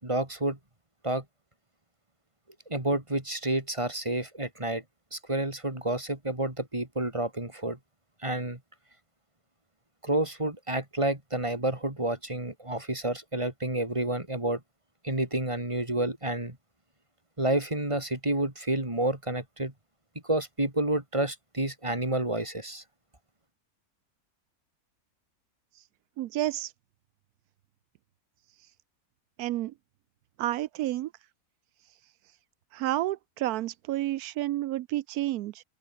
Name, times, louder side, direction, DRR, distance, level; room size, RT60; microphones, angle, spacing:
voice 1, 0.0-0.6 1.0-1.2 2.7-4.8 5.1-7.8 8.2-8.6 10.0-14.6 15.0-16.6 17.4-19.7 20.2-22.8, right 1 dB, 20° right, 3.8 m, -29 dB
voice 2, 26.2-26.7 29.4-29.7 30.4-31.1 32.7-35.6, right 15 dB, 85° right, 1.1 m, -30 dB
open air
omnidirectional pair, 1.6 m